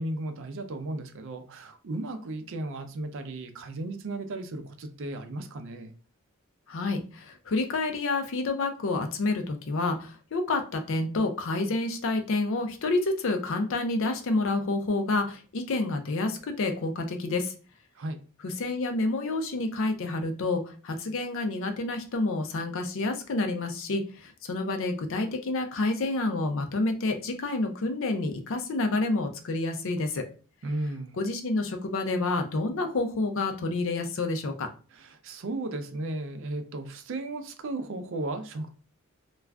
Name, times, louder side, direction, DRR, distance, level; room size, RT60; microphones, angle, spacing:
voice 1, 0.0-5.9 18.0-18.2 30.6-31.2 34.9-38.7, right 2 dB, 60° right, 7 dB, 0.4 m, -35 dB
voice 2, 6.7-17.5 18.4-30.2 31.2-34.7, left 2 dB, 60° left, 6 dB, 0.5 m, -29 dB
2.4 x 2.3 x 3.3 m, 0.37 s
head